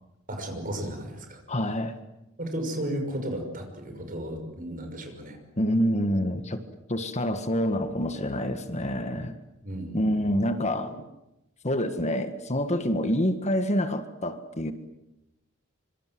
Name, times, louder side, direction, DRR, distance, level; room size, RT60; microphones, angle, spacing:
voice 1, 0.3-1.4 2.4-5.4 9.6-10.2, right 1 dB, 40° right, 5 dB, 6.0 m, -34 dB
voice 2, 1.5-2.0 5.6-6.6 6.9-9.4 9.9-11.1 11.6-14.7, equal, 35° left, 9 dB, 1.6 m, -27 dB
26.0 x 26.0 x 7.8 m, 0.94 s
head